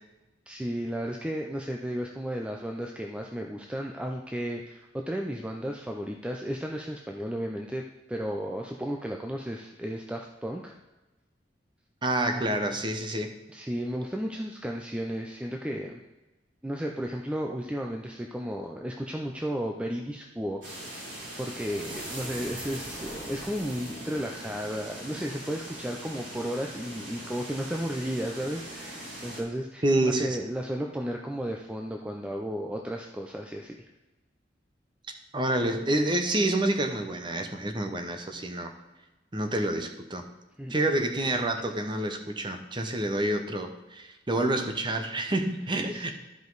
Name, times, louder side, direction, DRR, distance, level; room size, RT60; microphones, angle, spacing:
voice 1, 0.5-7.8 8.1-10.7 13.5-16.0 16.6-21.0 21.4-33.8 40.6-40.7 45.9-46.1, equal, 5° right, 1 dB, 0.5 m, -34 dB
voice 2, 12.0-13.3 29.8-30.3 35.3-38.7 39.3-40.2 40.7-46.1, right 1 dB, 25° right, 5 dB, 0.8 m, -28 dB
sound 1, 20.6-29.4, right 1 dB, 90° right, 3.3 m, -41 dB
12.5 x 5.2 x 3.9 m, 1.1 s
head